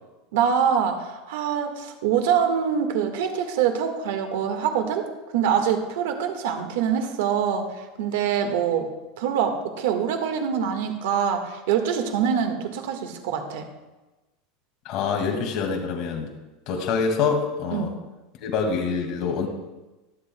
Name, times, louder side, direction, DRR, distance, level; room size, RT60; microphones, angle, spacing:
voice 1, 0.3-5.1 5.3-8.9 9.2-13.7 17.7-17.9, right 8 dB, 80° right, 5 dB, 1.5 m, -24 dB
voice 2, 14.9-16.3 16.7-17.9 18.4-19.5, left 5 dB, 45° left, 2 dB, 2.0 m, -25 dB
23.0 x 8.0 x 2.2 m, 1.1 s
supercardioid pair, 145°, 0 cm